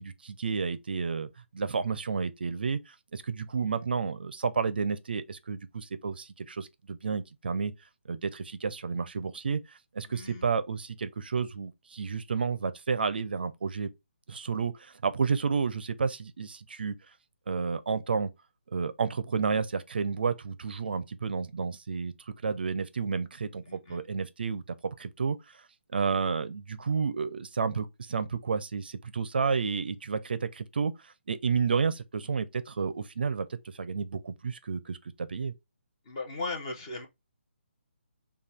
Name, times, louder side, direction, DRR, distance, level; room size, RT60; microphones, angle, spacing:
voice 1, 0.0-7.7 8.1-13.9 14.3-16.9 17.5-18.3 18.7-24.6 25.0-25.6 25.9-35.5, right 5 dB, 50° right, 0.5 m, -31 dB
voice 2, 10.1-10.5 23.6-24.0 36.0-37.1, left 3 dB, 25° left, 0.9 m, -37 dB
5.3 x 2.3 x 3.4 m
hypercardioid pair, 175°, 7 cm